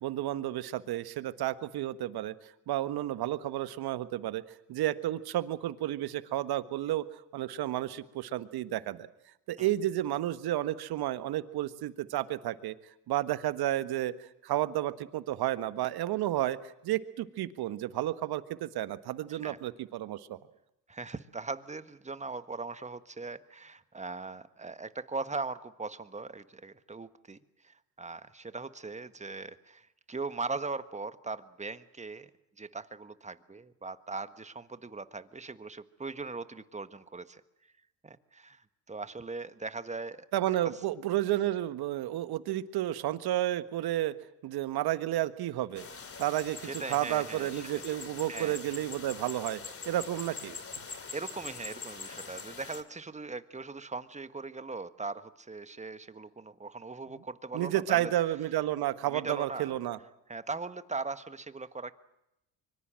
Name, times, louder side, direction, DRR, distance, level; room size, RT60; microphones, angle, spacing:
voice 1, 0.0-2.3 2.7-4.4 4.7-7.0 7.3-9.1 9.5-12.7 13.1-14.1 14.4-16.6 16.8-20.4 40.3-44.1 44.4-45.9 46.2-49.6 49.8-50.6 57.5-60.0, right 13 dB, 60° right, 12 dB, 1.6 m, -31 dB
voice 2, 20.9-27.4 27.6-32.3 32.6-37.4 38.0-38.6 38.9-40.6 46.6-47.8 48.3-48.6 51.1-58.1 59.1-59.8 60.3-61.9, right 3 dB, 15° right, 12 dB, 1.6 m, -40 dB
sound 1, 45.7-52.8, left 5 dB, 30° left, 2.9 m, -43 dB
24.5 x 24.0 x 7.7 m, 0.85 s
supercardioid pair, 75°, 42 cm